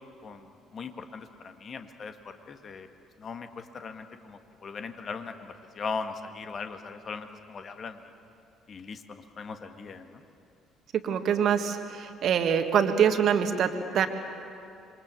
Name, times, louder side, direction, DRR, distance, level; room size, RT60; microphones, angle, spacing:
voice 1, 0.2-2.9 3.2-8.0 8.7-10.2, left 5 dB, 45° left, 7 dB, 1.8 m, -39 dB
voice 2, 10.9-14.1, right 8 dB, 55° right, 7 dB, 1.7 m, -25 dB
26.5 x 23.0 x 7.2 m, 2.6 s
figure-of-eight pair, 50°, 0 cm